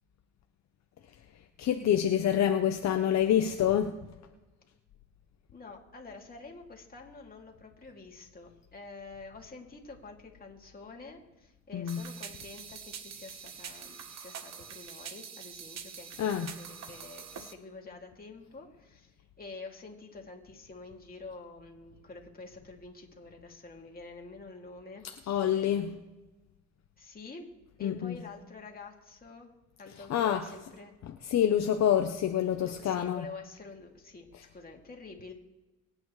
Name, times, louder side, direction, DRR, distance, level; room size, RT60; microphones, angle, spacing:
voice 1, 1.6-4.0 11.7-12.1 16.2-16.5 25.0-26.0 27.8-28.2 29.9-30.6 31.0-33.3 34.3-34.5, left 9 dB, 60° left, 5 dB, 0.8 m, -27 dB
voice 2, 5.5-25.7 27.0-27.5 27.8-29.5 29.8-30.9 32.6-34.3 34.5-35.3, left 3 dB, 30° left, 0 dB, 2.6 m, -48 dB
sound 1, 11.9-17.5, right 7 dB, 60° right, 1.2 m, -45 dB
24.0 x 8.9 x 3.2 m, 1.1 s
cardioid pair, 90°, 30 cm